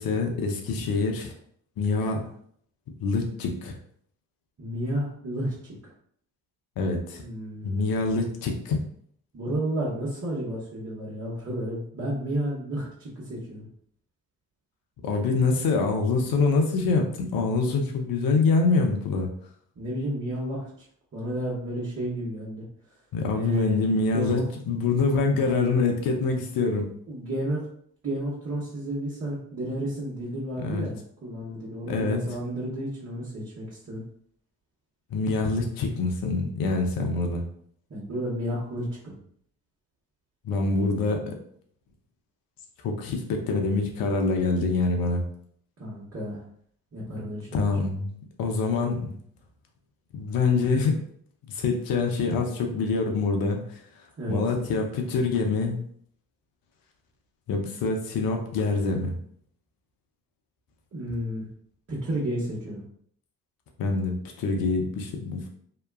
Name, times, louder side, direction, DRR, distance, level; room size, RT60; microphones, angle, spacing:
voice 1, 0.0-1.3 1.8-2.3 3.0-3.7 6.8-7.2 7.6-8.8 15.0-19.3 23.1-24.4 24.7-26.8 30.6-30.9 31.9-32.2 35.1-37.4 40.4-41.3 42.8-45.2 47.5-48.1 48.4-49.1 50.1-51.0 51.5-53.8 54.3-55.8 57.5-59.1 63.8-65.5, left 3 dB, 65° left, 3 dB, 0.7 m, -25 dB
voice 2, 4.6-5.5 7.2-7.8 9.3-13.7 19.8-20.7 21.1-22.6 23.3-23.8 24.1-24.4 27.1-27.6 28.0-34.0 37.9-39.1 45.8-46.4 46.9-47.7 54.2-54.4 60.9-61.4 61.9-62.8, right 1 dB, 40° right, -8 dB, 1.2 m, -31 dB
2.9 x 2.2 x 2.2 m, 0.62 s
hypercardioid pair, 45°, 38 cm